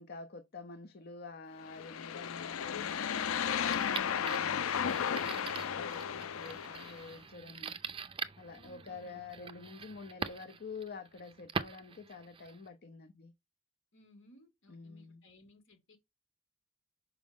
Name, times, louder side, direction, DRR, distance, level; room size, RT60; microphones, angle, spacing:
voice 1, 0.0-7.7 8.4-13.3 14.7-15.2, left 4 dB, 50° left, 0.7 m, -48 dB
sound 1, 1.7-7.1, left 8 dB, 90° left, 0.5 m, -34 dB
sound 2, 3.6-12.7, right 5 dB, 25° right, 0.5 m, -44 dB
voice 2, 8.5-9.2 13.9-16.0, left 1 dB, 65° left, 2.2 m, -61 dB
6.2 x 4.8 x 3.7 m
head